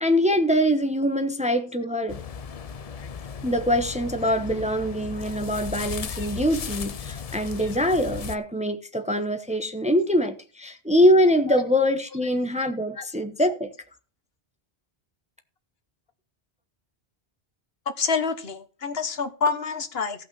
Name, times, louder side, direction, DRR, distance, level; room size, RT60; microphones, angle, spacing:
voice 1, 0.0-2.2 3.4-13.7, equal, 5° right, 0.9 m, -23 dB
sound 1, 2.1-8.4, left 6 dB, 45° left, 0.6 m, -36 dB
voice 2, 18.0-20.2, left 5 dB, 70° left, 1.4 m, -27 dB
15.5 x 5.7 x 5.6 m
omnidirectional pair, 1.1 m